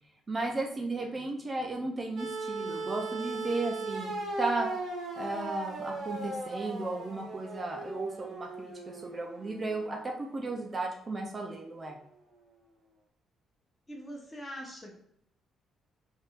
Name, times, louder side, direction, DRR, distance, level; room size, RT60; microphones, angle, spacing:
voice 1, 0.3-4.7 5.2-8.7 9.0-12.0, right 2 dB, 30° right, 1 dB, 0.5 m, -34 dB
sound 1, 2.2-10.3 11.5-11.6, right 2 dB, 75° right, 0.8 m, -38 dB
voice 2, 13.9-14.9, equal, 15° left, -1 dB, 1.0 m, -42 dB
3.4 x 2.7 x 2.4 m, 0.71 s
cardioid pair, 90°, 0 cm